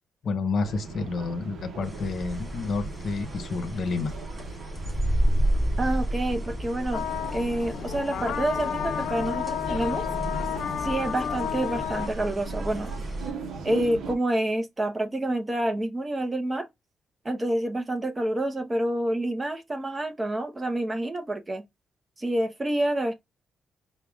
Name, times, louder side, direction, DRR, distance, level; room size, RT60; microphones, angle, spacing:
voice 1, 0.2-4.1, left 4 dB, 50° left, 0.8 m, -29 dB
sound 1, 0.6-14.1, right 5 dB, 70° right, 0.8 m, -40 dB
sound 2, 1.8-13.3, right 1 dB, ahead, 2.2 m, -31 dB
voice 2, 5.8-7.0 7.3-10.1 10.8-12.9 13.6-16.7 17.2-21.6 22.2-23.1, right 1 dB, 20° right, 0.8 m, -28 dB
sound 3, 6.9-12.1, left 8 dB, 90° left, 0.7 m, -31 dB
4.7 x 2.3 x 3.5 m
wide cardioid pair, 160°, 0 cm